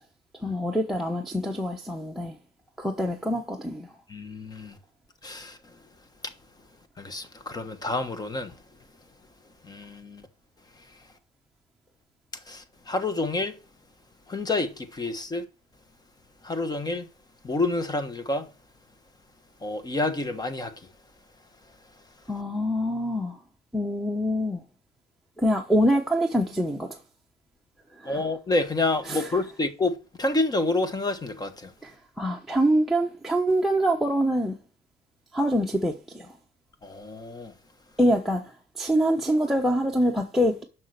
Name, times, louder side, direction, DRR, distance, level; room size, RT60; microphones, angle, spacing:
voice 1, 0.4-2.4 2.8-3.9 22.3-23.4 23.7-24.6 25.4-26.9 28.0-28.2 29.0-29.3 31.8-34.5 35.3-36.3 38.0-38.4 38.8-40.6, equal, ahead, 1.0 m, -25 dB
voice 2, 4.1-4.7 5.2-5.6 7.0-8.5 9.6-10.2 12.5-13.5 14.3-15.4 16.4-17.1 17.4-18.5 19.6-20.7 28.0-31.7 36.8-37.5, left 2 dB, 25° left, 1.3 m, -28 dB
7.4 x 6.1 x 6.6 m
cardioid pair, 110°, 17 cm